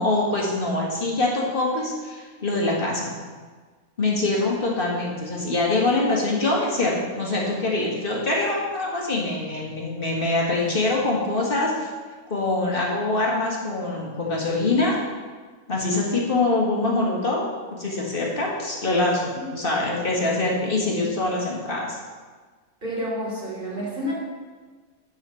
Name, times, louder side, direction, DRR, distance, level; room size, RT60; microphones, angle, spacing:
voice 1, 0.0-3.1 4.0-11.9 12.3-15.0 15.7-17.4 17.7-22.0, left 2 dB, 35° left, -3 dB, 2.1 m, -24 dB
voice 2, 22.8-24.1, equal, 35° right, -6 dB, 3.4 m, -29 dB
10.5 x 4.8 x 7.0 m, 1.4 s
omnidirectional pair, 1.6 m